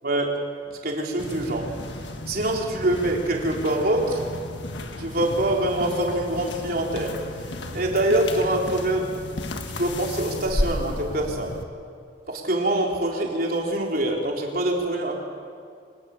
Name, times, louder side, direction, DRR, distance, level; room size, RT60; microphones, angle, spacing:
voice 1, 0.8-1.7 2.3-4.2 5.0-7.1 7.7-9.0 9.5-11.6 12.3-15.1, right 1 dB, 55° right, -1 dB, 3.7 m, -24 dB
sound 1, 1.2-11.6, left 1 dB, 85° left, 1.5 m, -33 dB
24.5 x 19.0 x 7.1 m, 2.3 s
head